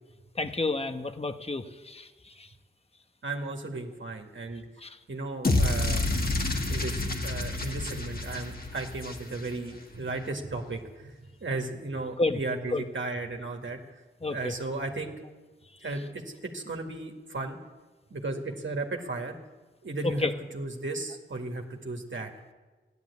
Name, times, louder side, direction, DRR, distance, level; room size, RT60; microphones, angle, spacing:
voice 1, 0.3-2.5 4.8-5.0 12.2-12.4 12.7-12.8 14.2-14.5 20.0-20.3, left 2 dB, 30° left, 8 dB, 1.1 m, -30 dB
voice 2, 3.2-4.7 5.1-6.1 6.7-11.1 11.4-13.8 14.3-15.2 15.8-17.6 18.1-19.4 19.8-22.3, right 2 dB, 65° right, 2 dB, 1.8 m, -35 dB
sound 1, 5.4-9.7, left 2 dB, 45° left, 1.9 m, -29 dB
14.5 x 10.5 x 8.4 m, 1.3 s
cardioid pair, 45°, 21 cm